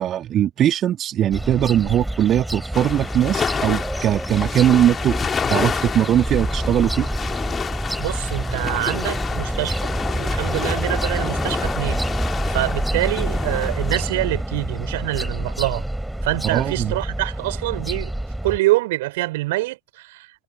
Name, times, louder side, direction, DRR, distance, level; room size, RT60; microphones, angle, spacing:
voice 1, 0.0-5.1 5.5-7.1 16.5-16.9, right 11 dB, 30° right, 2.9 m, -20 dB
sound 1, 1.3-18.6, right 1 dB, 5° right, 5.7 m, -27 dB
sound 2, 2.7-14.1, left 6 dB, 20° left, 3.7 m, -29 dB
voice 2, 8.0-12.0 12.5-15.8 16.2-18.1 18.4-20.4, right 19 dB, 50° right, 4.0 m, -25 dB
figure-of-eight pair, 90°, 0 cm